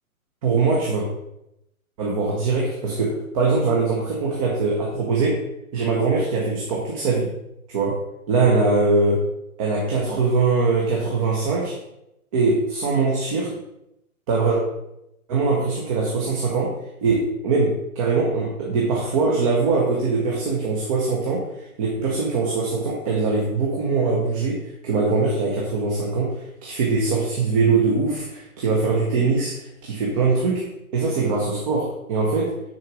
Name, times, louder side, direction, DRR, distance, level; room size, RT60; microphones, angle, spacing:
voice 1, 0.4-1.1 2.0-5.4 5.7-7.3 7.7-9.2 9.6-11.8 12.3-13.6 14.3-14.6 15.3-32.5, right 4 dB, 25° right, -3 dB, 1.2 m, -22 dB
9.5 x 4.5 x 4.9 m, 0.85 s
hypercardioid pair, 160°, 43 cm